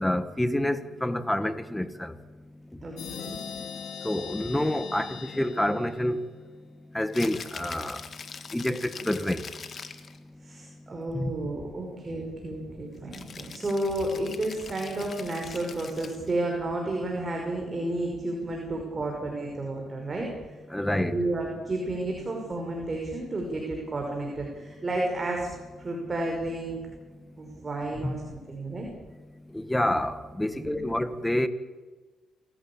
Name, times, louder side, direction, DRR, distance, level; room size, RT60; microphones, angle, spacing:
voice 1, 0.0-2.2 2.7-2.8 4.0-6.2 6.9-8.1 8.5-9.5 11.1-11.3 20.7-21.2 28.0-28.1 29.5-31.5, left 1 dB, 5° left, 1.6 m, -28 dB
voice 2, 2.8-3.4 10.4-20.3 20.9-25.5 25.8-26.8 27.4-28.9 30.5-31.0, right 2 dB, 30° right, 5.6 m, -32 dB
sound 1, 3.0-6.5, left 8 dB, 80° left, 2.4 m, -40 dB
Rattle (instrument), 7.0-10.2 13.1-16.3, left 6 dB, 50° left, 1.9 m, -43 dB
27.5 x 15.5 x 8.7 m
cardioid pair, 90°, 0 cm